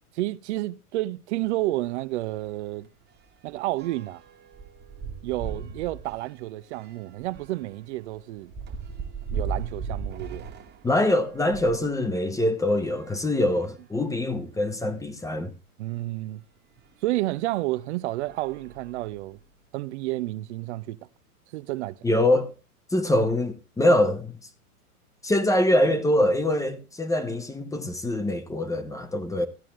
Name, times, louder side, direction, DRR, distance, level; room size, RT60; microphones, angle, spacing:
voice 1, 0.1-2.9 3.4-4.2 5.2-8.5 9.3-10.5 15.8-16.4 17.0-19.4 19.7-21.0 21.5-22.0, right 17 dB, 50° right, 0.6 m, -30 dB
sound 1, 1.4-1.6 2.0-2.1 2.4-11.9 12.6-13.9 14.6-14.7 15.0-15.1 16.8-16.9 17.5-17.7 18.2-19.4, right 5 dB, 25° right, 1.3 m, -38 dB
voice 2, 10.8-15.5 22.0-22.5 22.9-24.4 25.2-29.5, left 1 dB, 5° left, 0.9 m, -24 dB
14.5 x 9.9 x 3.1 m
hypercardioid pair, 110°, 46 cm